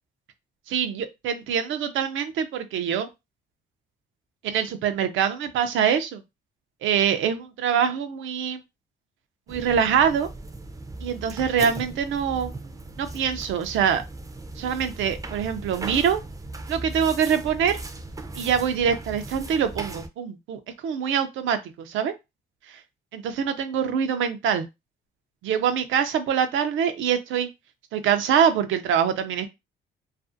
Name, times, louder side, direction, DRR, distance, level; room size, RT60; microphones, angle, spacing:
voice 1, 0.7-3.1 4.4-6.2 6.8-8.6 9.5-10.3 11.0-12.5 13.0-14.0 14.6-16.2 16.7-17.8 18.4-22.1 23.1-24.7 25.4-27.5 27.9-29.5, right 8 dB, 80° right, 0.5 m, -24 dB
sound 1, 9.5-20.1, right 2 dB, 15° right, 0.4 m, -38 dB
2.5 x 2.4 x 2.5 m
cardioid pair, 90°, 20 cm